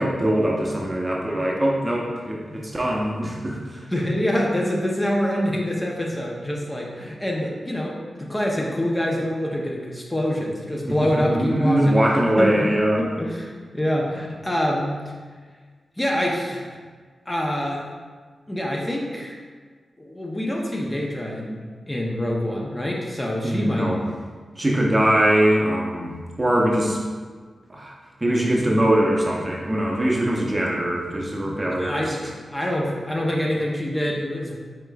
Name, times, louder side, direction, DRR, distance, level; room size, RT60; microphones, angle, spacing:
voice 1, 0.0-3.8 11.0-13.2 23.4-24.0 24.6-27.0 27.7-27.9 28.2-32.2, right 1 dB, 25° right, -2 dB, 0.8 m, -22 dB
voice 2, 3.9-12.0 12.4-12.7 13.0-14.9 16.0-16.8 17.3-17.8 18.5-19.4 20.0-23.9 30.7-30.8 31.4-34.6, equal, 20° left, -2 dB, 0.7 m, -26 dB
4.8 x 3.6 x 2.3 m, 1.5 s
cardioid pair, 50°, 0 cm